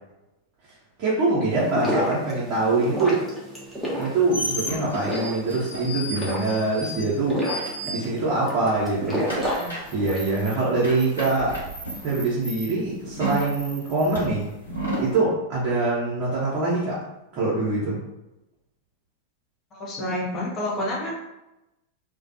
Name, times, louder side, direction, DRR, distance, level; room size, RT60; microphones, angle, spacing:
voice 1, 1.0-3.3 3.9-7.5 7.8-11.6 12.0-14.5 15.0-17.0 17.3-18.0, right 3 dB, 40° right, -7 dB, 0.7 m, -24 dB
sound 1, 1.5-10.3, equal, 5° right, 0.7 m, -31 dB
sound 2, 3.9-8.5 8.7-15.1, equal, 80° left, 0.9 m, -33 dB
voice 2, 19.7-21.1, left 1 dB, 30° left, -3 dB, 0.7 m, -28 dB
2.4 x 2.1 x 2.6 m, 0.94 s
figure-of-eight pair, 90°, 0 cm